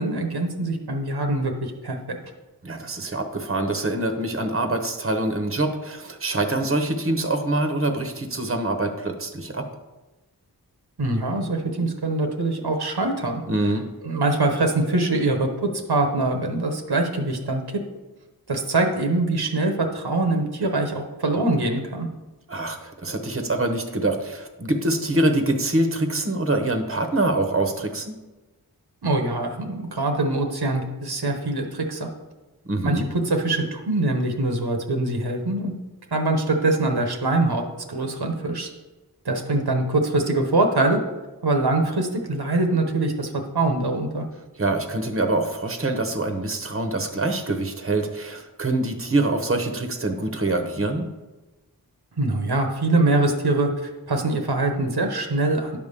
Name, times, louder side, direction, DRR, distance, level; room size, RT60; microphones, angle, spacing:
voice 1, 0.0-2.2 11.0-13.4 14.0-17.8 18.5-22.1 29.0-32.1 32.8-35.7 36.1-37.6 37.9-38.7 39.2-41.0 41.4-44.2 52.2-55.8, right 2 dB, 85° right, 4 dB, 1.1 m, -23 dB
voice 2, 2.6-9.7 13.5-13.8 22.5-28.1 32.7-33.1 44.6-51.1, right 2 dB, 35° right, 5 dB, 1.0 m, -25 dB
10.0 x 3.6 x 6.8 m, 1.1 s
wide cardioid pair, 50°, 38 cm